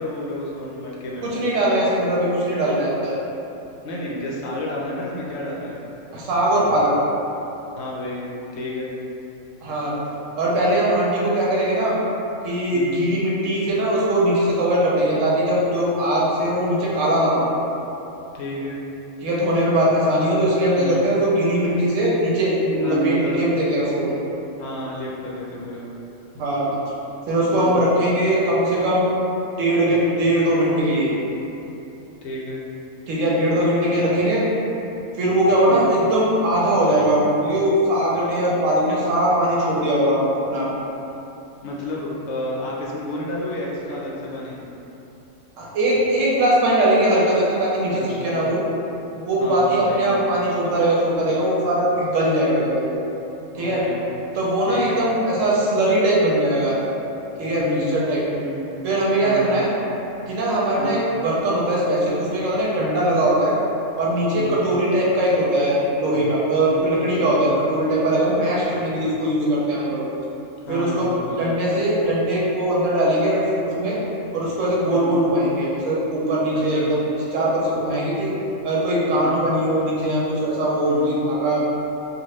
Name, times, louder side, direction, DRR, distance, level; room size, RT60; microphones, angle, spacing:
voice 1, 0.0-1.3 3.8-5.8 7.7-8.9 12.7-13.1 18.3-18.8 20.7-21.0 22.8-23.4 24.6-25.9 27.5-27.9 32.2-32.6 35.7-35.9 41.6-44.7 47.9-48.6 49.4-50.2 53.5-54.3 54.6-55.0 57.6-58.0 58.4-58.8 59.2-59.5 60.8-61.0 64.3-64.8 66.6-66.9 67.1-67.5 70.6-71.5 74.9-75.2 76.5-76.9 79.1-79.4 80.9-81.2, left 1 dB, 65° left, -4 dB, 0.8 m, -31 dB
voice 2, 1.2-3.1 6.1-6.9 9.6-9.9 10.4-11.9 12.4-17.5 19.2-24.1 26.3-26.7 27.3-29.2 29.6-31.1 33.1-34.4 35.2-40.7 45.6-48.6 49.3-52.9 53.5-53.8 54.3-56.8 57.4-58.2 58.8-59.7 60.3-63.6 64.0-70.0 70.7-74.0 74.3-78.3 78.6-81.6, right 1 dB, 85° right, -5 dB, 1.0 m, -20 dB
2.8 x 2.4 x 3.1 m, 2.9 s
omnidirectional pair, 1.3 m